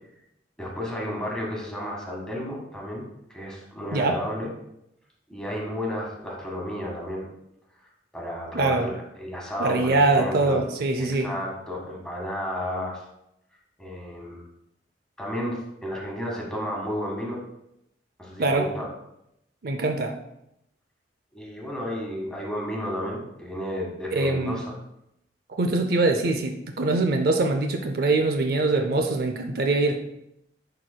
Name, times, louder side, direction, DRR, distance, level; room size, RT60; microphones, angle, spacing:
voice 1, 0.6-4.5 5.3-7.3 8.1-10.6 11.0-13.0 13.8-14.4 15.2-17.4 18.2-18.9 21.3-24.8, equal, 5° left, -2 dB, 1.5 m, -32 dB
voice 2, 8.5-8.9 9.6-11.3 18.4-18.7 19.6-20.1 24.1-24.6 25.6-30.0, right 2 dB, 55° right, 4 dB, 0.5 m, -23 dB
11.0 x 4.2 x 2.2 m, 0.82 s
head